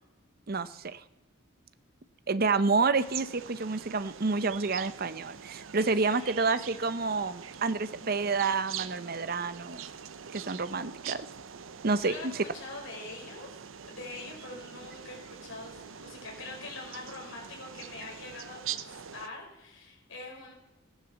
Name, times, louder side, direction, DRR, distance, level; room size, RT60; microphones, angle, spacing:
voice 1, 0.5-1.0 2.3-9.8 10.3-11.3 11.8-12.3, right 4 dB, 50° right, 13 dB, 0.7 m, -29 dB
sound 1, 2.9-19.3, right 8 dB, 85° right, 0.7 m, -43 dB
voice 2, 5.7-6.4 12.0-13.6 13.9-20.5, left 3 dB, 75° left, 0 dB, 5.2 m, -44 dB
16.0 x 10.5 x 7.1 m, 0.98 s
head